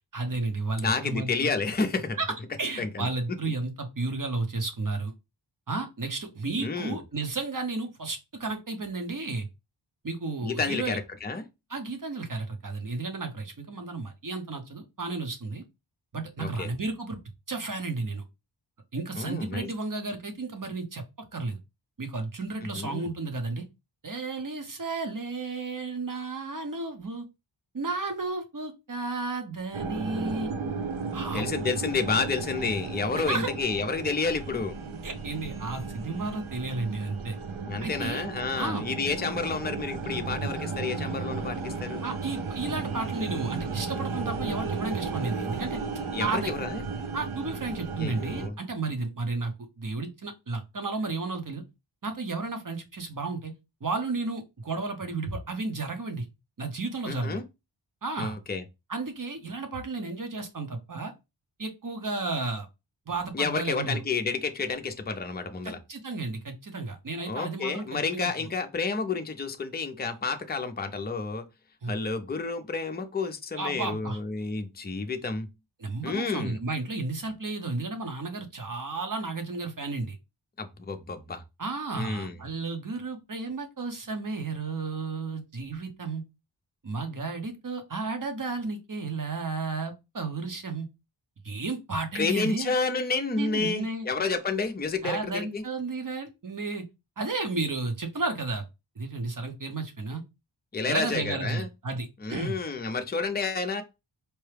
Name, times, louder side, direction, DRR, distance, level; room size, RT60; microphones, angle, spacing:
voice 1, 0.1-1.5 2.2-5.1 5.7-9.5 10.0-11.0 11.7-15.6 16.1-17.2 17.5-18.2 18.9-21.0 21.3-21.6 22.0-23.6 24.0-27.2 27.7-30.5 31.1-31.5 33.1-33.5 35.0-37.4 37.8-38.2 38.6-38.8 42.0-45.8 46.2-46.5 47.1-51.6 52.0-53.5 53.8-56.2 56.6-57.4 58.0-58.4 58.9-61.1 61.6-62.7 63.1-64.0 65.6-68.3 71.8-71.9 73.6-74.2 75.8-80.2 81.6-86.2 86.8-90.9 91.4-92.7 93.4-94.1 95.0-96.8 97.2-98.7 99.0-100.2 100.9-102.6, right 3 dB, 40° right, 1.0 m, -33 dB
voice 2, 0.8-2.2 2.8-3.1 6.6-7.0 10.4-11.4 16.4-16.7 19.2-19.7 22.8-23.1 31.3-34.7 37.7-42.0 46.1-46.8 48.0-48.6 57.1-57.4 58.2-58.6 63.3-65.8 67.3-71.4 71.9-75.5 76.0-76.6 80.6-81.4 81.9-82.4 92.1-95.6 100.7-101.7 102.2-103.8, left 4 dB, 20° left, 0.5 m, -30 dB
sound 1, 29.7-48.5, right 4 dB, 80° right, 0.7 m, -34 dB
4.6 x 2.2 x 3.3 m
wide cardioid pair, 75°, 47 cm